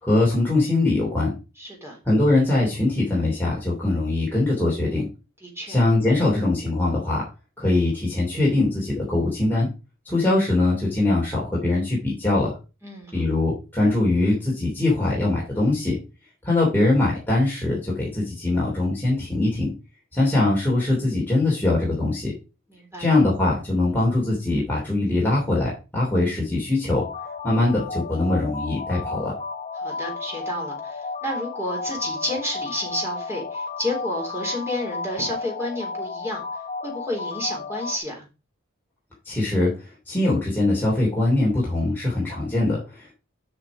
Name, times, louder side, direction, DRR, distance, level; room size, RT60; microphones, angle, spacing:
voice 1, 0.0-1.4 2.0-5.1 5.7-7.2 7.6-9.7 10.0-12.5 13.1-16.0 16.4-19.7 20.1-22.3 23.0-27.1 27.4-29.3 39.2-39.7 40.1-43.1, left 2 dB, 10° left, -5 dB, 3.0 m, -22 dB
voice 2, 1.6-2.0 5.4-5.8 12.8-13.1 22.7-23.2 29.8-36.4 36.8-38.3, left 1 dB, 10° right, -1 dB, 3.6 m, -30 dB
sound 1, 27.0-38.0, left 4 dB, 35° left, 0.9 m, -33 dB
7.6 x 5.9 x 4.9 m, 0.30 s
head